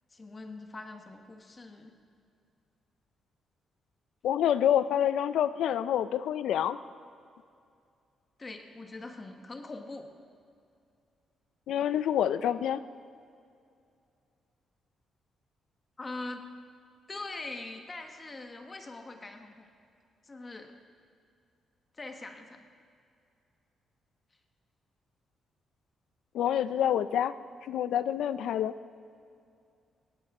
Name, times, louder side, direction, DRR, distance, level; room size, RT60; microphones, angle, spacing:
voice 1, 0.1-1.9 8.4-10.1 16.0-16.4 17.1-19.7 20.2-20.7 22.0-22.7, left 2 dB, 25° left, 5 dB, 1.3 m, -42 dB
voice 2, 4.2-6.8 11.7-12.8 26.3-27.4 27.6-28.7, left 10 dB, 85° left, 14 dB, 0.4 m, -27 dB
18.5 x 15.5 x 3.7 m, 2.4 s
cardioid pair, 125°, 0 cm